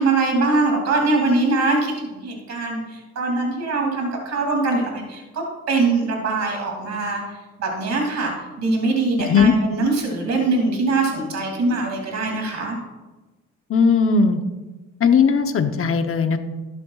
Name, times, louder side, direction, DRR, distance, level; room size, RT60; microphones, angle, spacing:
voice 1, 0.0-7.2 7.6-8.3 8.6-12.7, right 3 dB, 60° right, 1 dB, 2.8 m, -22 dB
voice 2, 9.2-9.5 13.7-14.4 15.0-16.4, left 5 dB, 45° left, 7 dB, 0.9 m, -17 dB
12.5 x 11.0 x 2.4 m, 1.2 s
cardioid pair, 90°, 30 cm